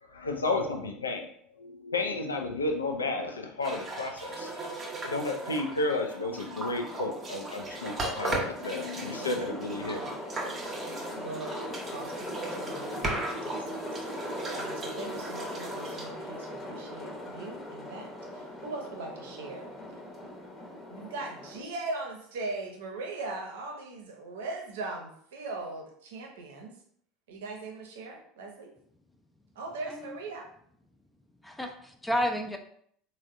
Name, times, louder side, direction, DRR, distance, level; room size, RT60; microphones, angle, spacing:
voice 1, 0.0-1.3 1.6-10.0, left 2 dB, 85° left, 3 dB, 0.4 m, -32 dB
sound 1, 3.6-17.1, right 2 dB, 30° right, 0.7 m, -38 dB
voice 2, 5.4-5.7 6.2-6.3 9.0-9.3 9.9-10.6 11.1-14.0 14.5-19.8 20.9-26.8 27.3-28.7 29.6-30.5, right 3 dB, 70° right, 2 dB, 0.6 m, -40 dB
sound 2, 6.9-21.6, left 1 dB, 30° left, 0.8 m, -40 dB
voice 3, 31.4-32.6, equal, 5° left, 4 dB, 0.4 m, -31 dB
3.4 x 2.1 x 2.4 m, 0.65 s
figure-of-eight pair, 75°, 0 cm